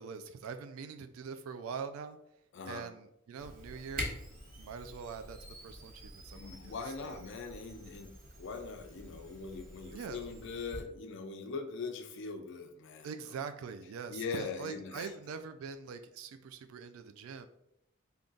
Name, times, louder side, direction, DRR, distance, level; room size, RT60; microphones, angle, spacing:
voice 1, 0.0-2.2 2.7-7.2 9.9-10.2 13.0-17.5, right 5 dB, 85° right, 9 dB, 0.3 m, -44 dB
voice 2, 2.5-2.9 6.3-13.1 14.1-15.1, left 4 dB, 60° left, 7 dB, 0.4 m, -41 dB
Camera, 3.4-10.8, equal, 45° right, 1.0 m, -46 dB
3.6 x 2.3 x 3.8 m, 0.79 s
head